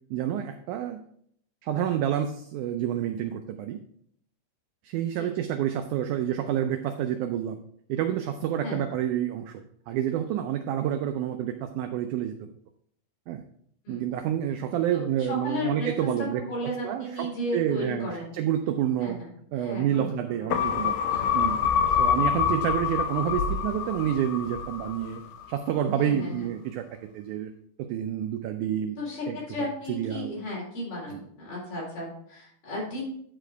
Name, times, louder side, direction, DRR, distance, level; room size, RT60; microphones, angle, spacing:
voice 1, 0.1-1.0 1.6-3.8 4.8-7.6 7.9-12.4 13.3-13.4 13.9-16.4 16.8-19.2 19.5-21.0 21.3-25.2 25.5-26.8 27.1-27.5 27.8-29.0 29.3-29.4 29.9-30.3 31.1-31.2, right 10 dB, 85° right, 7 dB, 1.7 m, -29 dB
voice 2, 14.9-15.9 16.2-18.3 19.0-19.3 19.6-20.0 20.3-20.5 21.1-21.4 26.0-26.5 29.0-33.0, left 1 dB, 65° left, -5 dB, 5.4 m, -34 dB
sound 1, 20.5-25.2 25.6-25.7, left 7 dB, 85° left, 2.3 m, -26 dB
10.0 x 4.9 x 4.5 m, 0.65 s
omnidirectional pair, 4.1 m